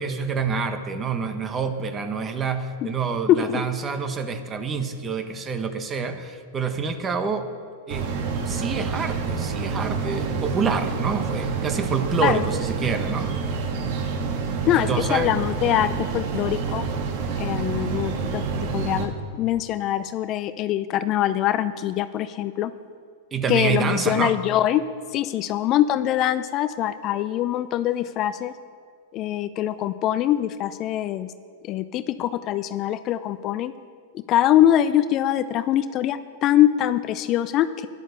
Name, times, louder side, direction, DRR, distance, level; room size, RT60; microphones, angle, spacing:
voice 1, 0.0-7.5 7.9-13.3 14.7-15.3 23.3-24.3, right 5 dB, 25° right, 8 dB, 1.4 m, -27 dB
voice 2, 3.3-3.6 12.2-12.4 14.7-16.9 17.4-18.4 18.7-19.1 19.4-22.7 23.5-24.8 25.1-28.5 29.1-31.3 31.6-33.7 34.1-37.9, left 12 dB, 40° left, 13 dB, 0.5 m, -23 dB
sound 1, 7.9-19.1, right 5 dB, 55° right, 2.0 m, -28 dB
12.5 x 11.0 x 6.8 m, 2.2 s
hypercardioid pair, 105°, 0 cm